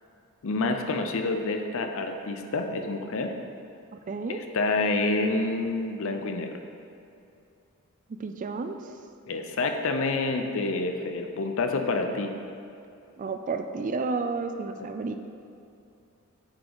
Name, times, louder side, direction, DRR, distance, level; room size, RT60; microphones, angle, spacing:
voice 1, 0.4-3.3 4.3-6.5 9.3-12.3, left 3 dB, 65° left, 5 dB, 0.6 m, -28 dB
voice 2, 4.1-4.4 8.2-8.8 13.2-15.1, right 4 dB, 35° right, 7 dB, 0.3 m, -31 dB
8.3 x 4.9 x 3.9 m, 2.6 s
head